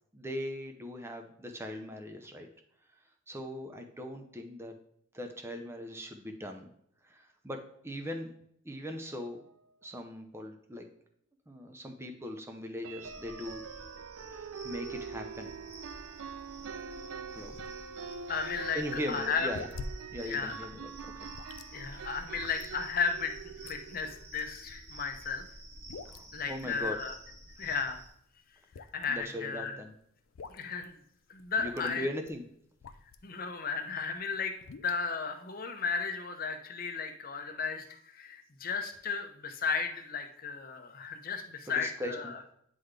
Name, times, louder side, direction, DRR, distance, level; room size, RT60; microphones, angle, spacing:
voice 1, 0.1-2.5 3.3-4.8 5.1-6.7 7.0-8.3 8.6-9.4 9.8-10.9 11.5-13.6 14.3-15.5 17.3-17.6 18.7-19.7 20.1-21.3 21.9-22.0 26.1-27.0 29.1-29.9 31.6-32.4 41.7-42.3, left 1 dB, 10° right, 4 dB, 0.7 m, -40 dB
sound 1, 8.9-9.0 9.4-9.5 9.8-9.9 12.8-24.3, right 6 dB, 80° right, 0.4 m, -44 dB
sound 2, 13.0-28.1, right 1 dB, 50° right, 1.2 m, -50 dB
sound 3, 15.3-33.4 33.8-35.0, left 3 dB, 75° left, 0.4 m, -49 dB
voice 2, 18.3-19.5 20.2-20.5 21.7-25.4 26.3-27.1 27.6-28.0 28.8-29.8 30.5-31.0 31.3-32.1 33.2-37.8 38.1-42.4, left 5 dB, 45° left, 5 dB, 0.8 m, -34 dB
9.4 x 3.9 x 3.3 m, 0.70 s
head